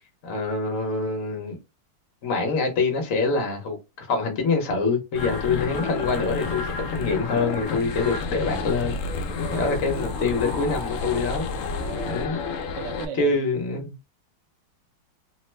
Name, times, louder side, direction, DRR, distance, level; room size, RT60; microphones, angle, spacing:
voice 1, 0.2-1.6 2.2-9.0 9.5-11.4 12.1-12.4 13.1-13.9, left 3 dB, 55° left, 1.1 m, -25 dB
sound 1, 5.1-13.0, left 4 dB, 90° left, 0.7 m, -30 dB
voice 2, 9.1-9.8 11.7-12.3 12.7-13.4, right 7 dB, 80° right, 1.2 m, -37 dB
3.0 x 2.0 x 3.2 m
omnidirectional pair, 1.9 m